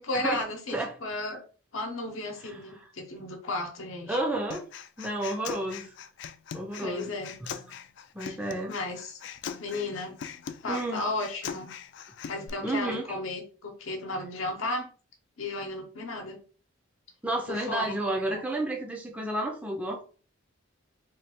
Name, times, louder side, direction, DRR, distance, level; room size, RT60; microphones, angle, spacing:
voice 1, 0.0-1.4 1.7-4.2 6.8-7.3 8.2-8.4 8.7-9.2 9.6-10.2 10.6-11.7 12.3-14.9 15.4-16.4 17.5-18.0, left 2 dB, 85° left, 3 dB, 0.8 m, -34 dB
voice 2, 4.1-4.6 5.0-5.9 6.5-7.1 7.4-7.5 8.1-8.7 10.7-11.0 12.6-13.2 17.2-20.0, right 1 dB, 5° right, 0 dB, 0.4 m, -31 dB
Human voice, 4.5-12.5, left 7 dB, 60° left, 0.3 m, -41 dB
3.1 x 2.3 x 4.2 m, 0.39 s
head